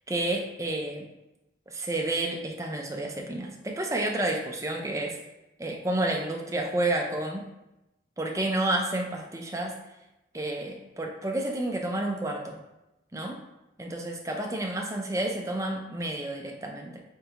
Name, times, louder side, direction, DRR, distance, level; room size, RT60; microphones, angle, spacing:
voice 1, 0.1-1.1 1.7-5.2 5.6-7.5 8.2-9.8 10.3-12.6 13.1-13.4 13.8-17.0, right 1 dB, 15° right, 1 dB, 0.5 m, -30 dB
4.4 x 4.0 x 2.9 m, 0.95 s
head